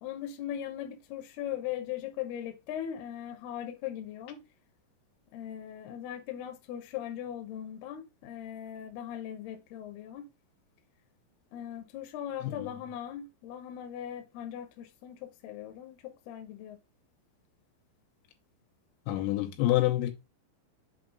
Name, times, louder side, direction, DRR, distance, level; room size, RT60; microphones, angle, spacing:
voice 1, 0.0-4.4 5.3-10.3 11.5-16.8, left 10 dB, 75° left, 2.5 m, -39 dB
voice 2, 19.1-20.1, left 15 dB, 90° left, 3.4 m, -27 dB
7.2 x 3.0 x 5.1 m
omnidirectional pair, 5.3 m